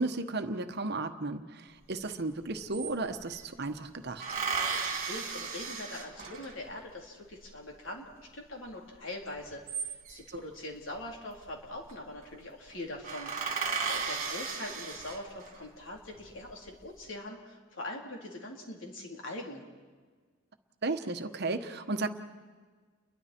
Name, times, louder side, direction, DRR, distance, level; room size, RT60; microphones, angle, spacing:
voice 1, 0.0-4.2 10.3-10.4 20.8-22.1, right 3 dB, 55° right, 8 dB, 1.2 m, -34 dB
sound 1, 2.1-2.2 2.4-3.4 4.2-6.7 9.4-10.4 11.5-11.9 12.2-12.3 12.7-12.8 13.0-15.6 16.2-16.8, right 5 dB, 40° right, 2.8 m, -35 dB
voice 2, 4.6-8.1 8.3-13.3 13.9-19.6, left 1 dB, 80° left, 0 dB, 3.6 m, -42 dB
30.0 x 22.5 x 4.5 m, 1.5 s
head